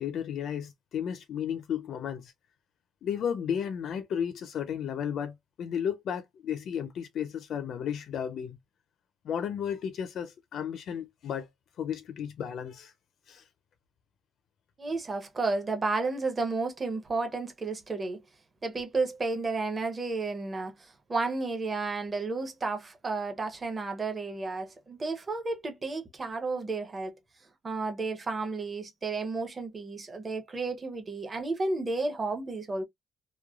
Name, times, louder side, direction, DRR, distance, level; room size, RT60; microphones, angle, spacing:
voice 1, 0.0-2.3 3.0-8.6 9.2-11.5 11.8-12.9 13.3-13.5, left 8 dB, 60° left, 0.4 m, -33 dB
voice 2, 14.8-18.2 18.6-27.1 27.6-32.8, right 3 dB, 25° right, 0.7 m, -32 dB
3.0 x 2.1 x 2.3 m
cardioid pair, 165°, 0 cm